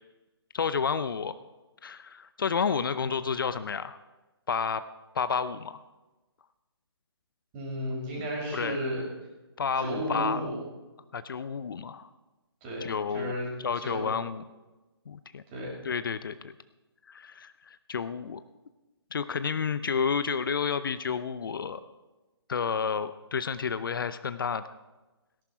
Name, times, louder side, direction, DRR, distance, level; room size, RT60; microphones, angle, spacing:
voice 1, 0.5-1.3 1.8-4.0 4.5-4.9 5.1-5.8 8.5-8.8 9.6-10.4 11.1-12.1 12.8-13.3 13.6-14.4 15.1-15.4 15.8-16.5 17.1-18.4 19.1-21.8 22.5-24.7, left 6 dB, 55° left, 13 dB, 0.6 m, -30 dB
voice 2, 7.5-9.0 9.8-10.6 12.6-12.9 13.1-13.5 13.8-14.0 15.5-15.7, equal, 25° right, -2 dB, 5.7 m, -33 dB
17.5 x 11.5 x 4.6 m, 1.1 s
figure-of-eight pair, 145°, 14 cm